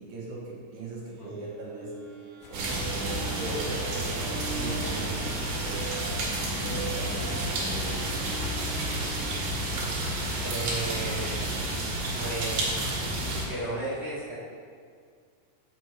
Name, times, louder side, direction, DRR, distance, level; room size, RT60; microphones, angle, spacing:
voice 1, 0.0-3.8 4.2-6.2 6.6-8.1, right 2 dB, 60° right, -5 dB, 2.8 m, -40 dB
sound 1, 1.1-11.4, right 5 dB, 45° right, 1.9 m, -42 dB
sound 2, 2.4-9.0, left 6 dB, 80° left, 1.9 m, -44 dB
sound 3, 2.5-13.5, right 1 dB, 80° right, 3.4 m, -30 dB
voice 2, 10.4-11.3 12.2-13.0 13.5-14.4, right 2 dB, 55° left, -8 dB, 0.7 m, -34 dB
7.4 x 6.4 x 4.6 m, 2.2 s
omnidirectional pair, 4.1 m